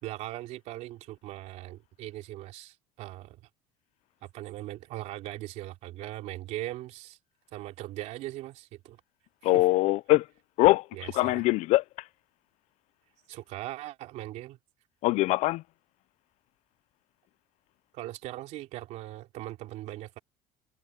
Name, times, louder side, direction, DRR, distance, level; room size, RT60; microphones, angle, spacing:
voice 1, 0.0-3.4 4.2-7.2 7.5-9.0 9.4-9.5 11.0-11.4 13.3-14.6 17.9-20.2, right 15 dB, 65° right, 3.4 m, -40 dB
voice 2, 9.4-10.3 10.6-12.1 15.0-15.6, left 19 dB, 60° left, 0.4 m, -23 dB
cardioid pair, 145°, 13 cm